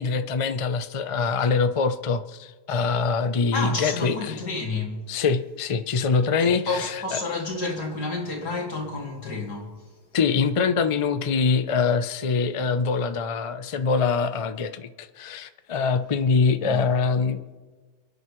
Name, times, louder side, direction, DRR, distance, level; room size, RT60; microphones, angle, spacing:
voice 1, 0.0-4.4 5.1-7.2 10.1-17.4, left 5 dB, 50° left, 0.3 m, -24 dB
voice 2, 3.5-5.1 6.4-9.9 16.6-16.9, left 3 dB, 75° left, 3.0 m, -30 dB
28.0 x 9.5 x 3.2 m
omnidirectional pair, 1.7 m